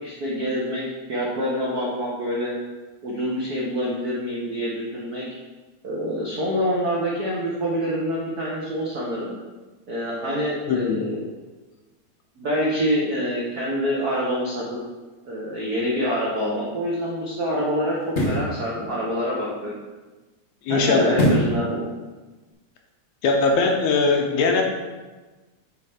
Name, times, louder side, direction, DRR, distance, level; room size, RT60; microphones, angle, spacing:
voice 1, 0.0-0.8 1.1-2.6 3.0-5.2 5.8-9.4 9.9-11.2 12.4-14.6 15.2-18.0 18.2-19.8 20.7-21.9, equal, 80° right, -5 dB, 0.8 m, -26 dB
voice 2, 10.7-11.0 20.7-21.1 23.2-24.6, left 4 dB, 75° left, 2 dB, 1.7 m, -20 dB
sound 1, 16.2-16.3 18.0-18.5 21.1-21.6 22.1-22.2, equal, 50° left, 0.9 m, -21 dB
9.0 x 3.3 x 5.1 m, 1.2 s
omnidirectional pair, 3.3 m